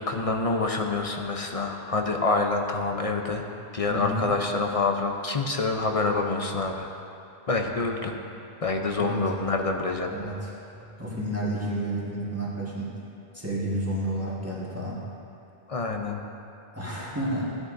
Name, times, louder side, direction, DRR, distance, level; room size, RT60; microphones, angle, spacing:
voice 1, 0.0-3.5 3.7-6.9 7.5-8.2 8.6-10.1 15.7-16.2, left 3 dB, 40° left, 3 dB, 0.6 m, -27 dB
voice 2, 3.9-4.3 9.0-9.2 10.1-12.9 13.3-15.0 16.7-17.4, right 1 dB, 15° right, -6 dB, 1.5 m, -31 dB
15.5 x 9.6 x 2.6 m, 2.7 s
omnidirectional pair, 1.1 m